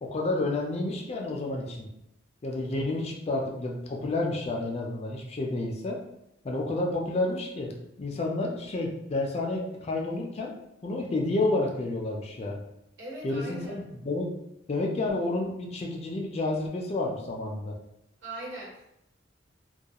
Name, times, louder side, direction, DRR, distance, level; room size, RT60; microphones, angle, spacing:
voice 1, 0.0-1.9 2.4-6.0 6.4-10.5 10.8-12.6 13.2-14.3 14.7-17.7, left 2 dB, 35° left, 0 dB, 0.4 m, -30 dB
voice 2, 13.0-13.8 18.2-19.0, right 1 dB, 65° right, -6 dB, 1.1 m, -40 dB
2.3 x 2.2 x 2.8 m, 0.81 s
head